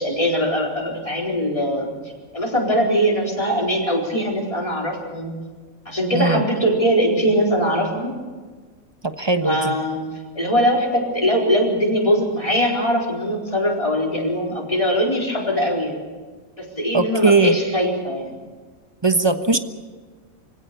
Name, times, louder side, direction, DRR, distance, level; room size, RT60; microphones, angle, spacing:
voice 1, 0.0-1.9 2.3-5.3 5.8-8.1 9.4-10.0 10.3-16.0 16.6-18.4, equal, 25° left, -2 dB, 4.5 m, -21 dB
voice 2, 6.1-6.4 9.0-9.7 16.9-17.6 19.0-19.6, right 3 dB, 20° right, 8 dB, 1.1 m, -19 dB
25.0 x 17.0 x 7.0 m, 1.4 s
omnidirectional pair, 1.4 m